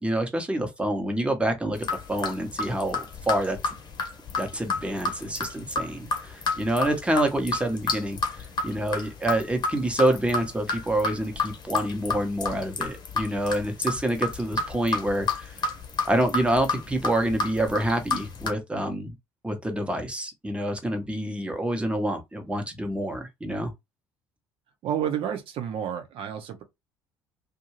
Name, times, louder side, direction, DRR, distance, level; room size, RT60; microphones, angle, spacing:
voice 1, 0.0-3.6 4.4-15.6 16.1-19.1 19.4-23.7, right 1 dB, 10° right, 1.0 m, -27 dB
sound 1, 1.7-18.5, left 3 dB, 40° left, 1.0 m, -30 dB
voice 2, 24.8-26.6, right 9 dB, 50° right, 0.8 m, -30 dB
2.6 x 2.3 x 3.1 m
figure-of-eight pair, 55°, 12 cm